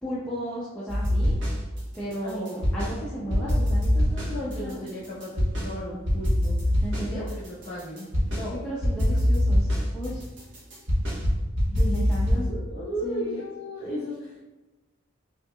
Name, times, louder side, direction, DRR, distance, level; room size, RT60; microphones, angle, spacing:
voice 1, 0.0-1.4 1.9-4.8 6.8-7.3 8.5-10.2 11.9-12.5 13.0-13.4, equal, 5° left, -9 dB, 0.6 m, -35 dB
sound 1, 0.9-1.8 2.1-3.0 3.3-5.7 6.1-8.5 8.8-12.4, equal, 65° right, 1.2 m, -24 dB
voice 2, 2.2-2.6 3.2-3.6 4.2-8.6 9.1-9.2 11.7-14.4, equal, 45° left, -10 dB, 1.4 m, -35 dB
5.5 x 2.8 x 2.3 m, 1.1 s
head